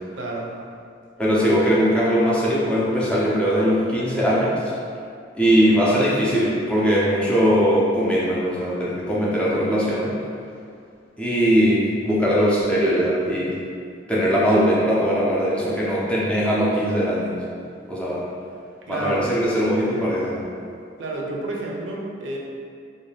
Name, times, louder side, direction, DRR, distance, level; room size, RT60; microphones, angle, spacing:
voice 1, 0.2-0.5 18.9-19.3 21.0-22.4, right 2 dB, 80° right, -2 dB, 0.5 m, -29 dB
voice 2, 1.2-4.6 5.3-10.1 11.2-13.6 14.1-17.4 17.9-18.2 18.9-20.4, equal, 5° left, -8 dB, 0.4 m, -20 dB
2.6 x 2.2 x 3.2 m, 2.3 s
head